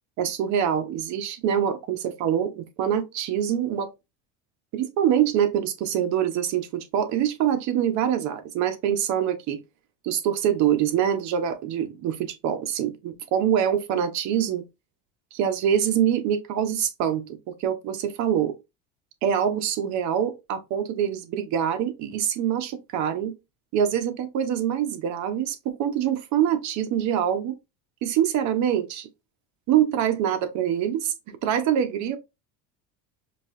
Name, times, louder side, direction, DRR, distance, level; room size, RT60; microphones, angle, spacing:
voice 1, 0.2-3.9 4.7-9.6 10.0-14.6 15.3-18.6 19.2-23.3 23.7-27.5 28.0-29.1 29.7-31.1 31.4-32.2, right 9 dB, 60° right, 1.0 m, -25 dB
5.1 x 2.8 x 2.6 m
cardioid pair, 130°, 32 cm